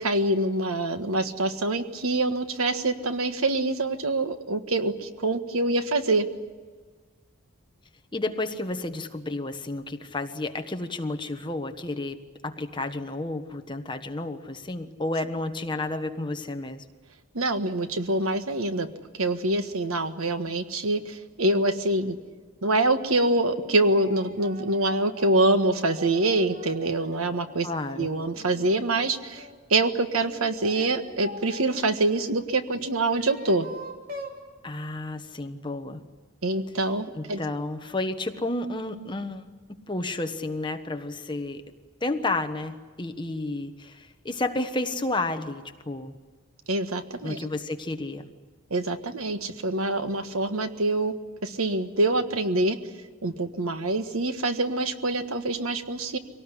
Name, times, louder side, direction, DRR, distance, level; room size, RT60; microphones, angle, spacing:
voice 1, 0.0-6.2 17.3-18.9 19.1-22.2 22.6-27.7 28.0-33.7 36.4-37.4 46.7-47.4 48.7-51.1 51.4-52.8 53.2-56.2, right 2 dB, 80° right, 8 dB, 1.6 m, -25 dB
voice 2, 8.1-12.2 12.4-16.8 27.6-28.1 34.6-36.0 37.1-39.4 39.9-41.6 42.0-46.1 47.2-48.3, left 2 dB, 20° left, 7 dB, 1.2 m, -31 dB
sound 1, 22.6-23.1 23.6-27.6 28.0-29.6 30.3-31.9 32.7-34.4, right 1 dB, 40° right, 3.0 m, -43 dB
24.5 x 18.5 x 10.0 m, 1.4 s
head